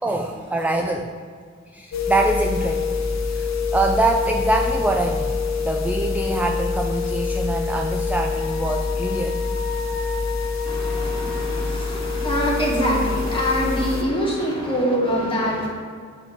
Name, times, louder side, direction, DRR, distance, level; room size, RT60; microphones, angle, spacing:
voice 1, 0.0-1.1 1.7-3.0 3.2-9.5, right 2 dB, 5° right, 3 dB, 0.4 m, -24 dB
sound 1, 1.9-14.0, left 4 dB, 65° left, 0.9 m, -25 dB
Wind instrument woodwind instrument, 8.3-11.8, left 3 dB, 50° right, 2.1 m, -37 dB
voice 2, 10.6-15.7, equal, 15° left, -5 dB, 2.4 m, -24 dB
8.0 x 4.5 x 6.9 m, 2.1 s
wide cardioid pair, 125°, 29 cm